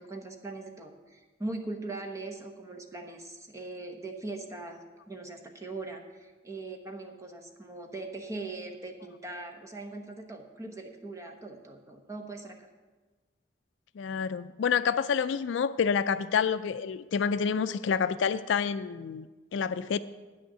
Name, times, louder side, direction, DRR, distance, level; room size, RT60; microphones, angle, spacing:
voice 1, 0.0-12.5, right 2 dB, 15° right, 3 dB, 1.0 m, -40 dB
voice 2, 14.0-19.3 19.5-20.0, left 6 dB, 65° left, 13 dB, 0.3 m, -28 dB
9.4 x 6.4 x 8.1 m, 1.3 s
head